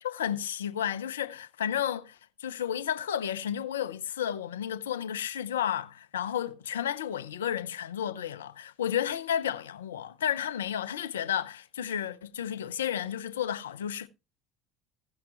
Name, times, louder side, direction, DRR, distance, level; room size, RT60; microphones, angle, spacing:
voice 1, 0.0-14.1, left 9 dB, 85° left, 0.7 m, -32 dB
17.0 x 5.9 x 3.1 m
hypercardioid pair, 70°, 0 cm